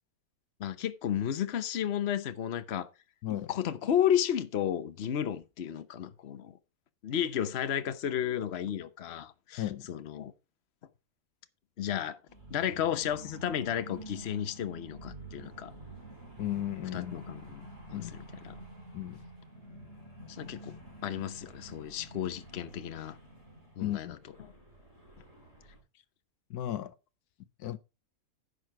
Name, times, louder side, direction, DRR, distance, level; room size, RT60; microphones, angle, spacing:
voice 1, 0.6-2.9 3.5-6.5 7.0-10.3 11.8-12.2 12.5-15.7 16.9-18.6 20.3-20.7 21.0-23.1 23.8-24.1, left 9 dB, 50° left, 1.0 m, -33 dB
sound 1, 12.3-25.8, right 1 dB, 45° right, 5.3 m, -49 dB
voice 2, 16.4-17.1 17.9-18.1 18.9-19.2 23.8-24.2 26.5-27.0 27.6-27.8, left 13 dB, 80° left, 1.2 m, -34 dB
10.5 x 6.6 x 4.7 m
omnidirectional pair, 1.7 m